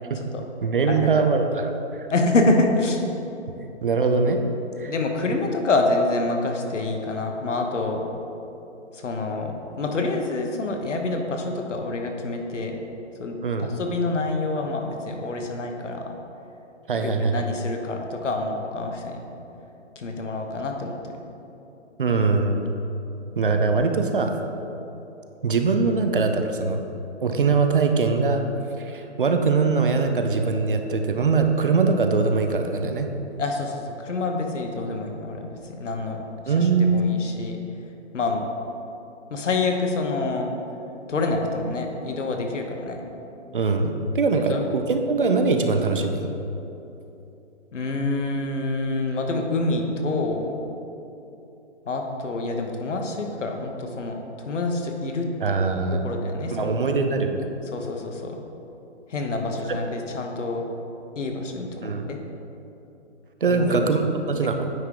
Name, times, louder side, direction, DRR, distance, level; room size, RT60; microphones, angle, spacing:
voice 1, 0.6-1.7 3.8-4.4 4.8-4.9 13.4-13.7 16.9-17.4 22.0-22.6 23.4-24.4 25.4-26.8 27.2-28.4 28.8-33.1 36.5-37.0 43.5-46.3 55.4-56.1 56.5-57.5 59.7-59.8 61.8-62.1 63.4-64.0 64.3-64.7, right 4 dB, 45° right, 5 dB, 0.5 m, -22 dB
voice 2, 2.1-3.0 4.9-8.0 8.9-12.8 13.2-16.1 16.9-19.2 19.9-21.1 33.4-37.6 38.1-38.4 39.3-40.5 41.1-43.0 44.5-44.6 47.7-50.6 51.8-55.6 55.9-56.8 57.7-58.4 59.1-60.6 61.1-62.2 63.5-63.8 64.4-64.5, left 2 dB, 80° left, 3 dB, 1.2 m, -27 dB
9.2 x 3.7 x 4.8 m, 2.9 s
hypercardioid pair, 170°, 36 cm